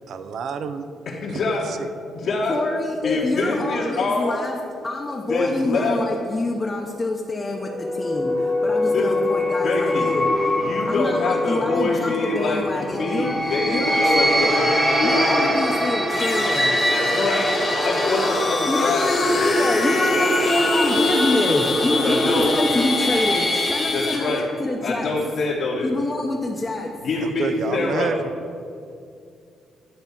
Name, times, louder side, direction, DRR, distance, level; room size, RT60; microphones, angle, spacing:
voice 1, 0.1-0.9 1.3-1.4 1.7-1.9 27.2-28.1, right 5 dB, 65° right, 10 dB, 0.6 m, -28 dB
voice 2, 1.0-1.6 2.1-2.5 3.0-4.4 5.3-6.0 8.8-9.1 9.6-10.1 10.6-15.6 16.9-17.5 17.8-19.5 22.0-22.5 23.9-24.4 24.8-25.9 26.9-28.1, left 3 dB, 65° left, -7 dB, 1.4 m, -25 dB
voice 3, 2.5-4.6 4.8-10.3 10.9-14.7 15.0-16.8 18.7-24.3 24.6-25.1 25.8-27.1, left 2 dB, 25° left, -1 dB, 0.8 m, -26 dB
sound 1, 7.6-24.4, equal, 15° right, 1.3 m, -24 dB
sound 2, 16.1-24.4, left 4 dB, 45° left, 1.4 m, -26 dB
10.5 x 3.5 x 6.9 m, 2.4 s
cardioid pair, 90°, 0 cm